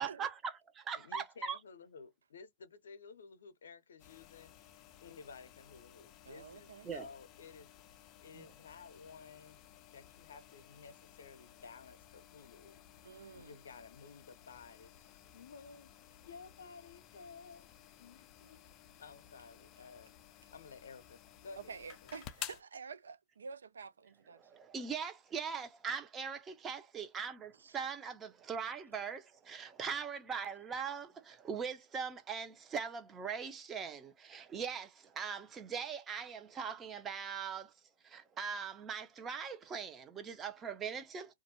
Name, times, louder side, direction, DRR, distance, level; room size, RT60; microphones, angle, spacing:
voice 1, 0.0-1.6 6.8-7.1 8.3-8.5 24.4-37.7 38.0-41.3, right 6 dB, 20° right, 0.6 m, -41 dB
voice 2, 1.0-7.7 8.2-9.6 9.8-12.8 13.3-15.9 16.2-17.7 18.0-18.6 19.0-20.1 20.5-21.8 22.0-22.1, left 5 dB, 80° left, 0.6 m, -54 dB
sound 1, 4.0-22.6, left 11 dB, 35° left, 0.4 m, -55 dB
voice 3, 6.2-6.9 13.0-13.6 21.6-24.4 27.6-27.8, right 5 dB, 85° right, 0.4 m, -49 dB
2.4 x 2.2 x 2.9 m
hypercardioid pair, 115°, 0 cm